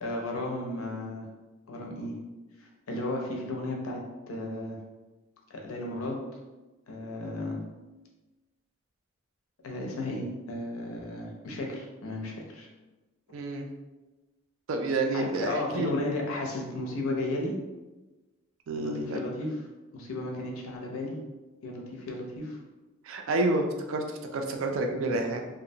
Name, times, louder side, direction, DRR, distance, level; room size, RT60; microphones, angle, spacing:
voice 1, 0.0-1.3 1.7-2.1 2.6-4.8 5.5-6.4 6.9-7.6 9.6-12.7 15.1-17.6 18.8-19.6 19.9-21.2 21.6-22.6, left 2 dB, 80° left, 0 dB, 0.5 m, -34 dB
voice 2, 13.3-13.7 14.7-16.0 18.7-19.2 23.0-25.5, right 2 dB, 65° right, 3 dB, 0.3 m, -29 dB
2.5 x 2.1 x 2.6 m, 1.1 s
head